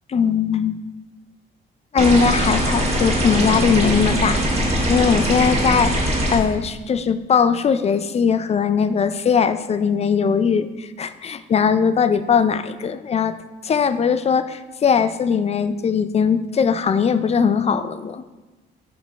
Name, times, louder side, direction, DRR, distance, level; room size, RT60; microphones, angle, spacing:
voice 1, 0.1-0.8 1.9-4.4 4.9-13.4 13.6-18.2, left 6 dB, 30° left, 12 dB, 0.4 m, -20 dB
sound 1, 2.0-6.4, equal, 30° right, 1.7 m, -21 dB
5.7 x 5.1 x 4.1 m, 1.1 s
cardioid pair, 90°, 20 cm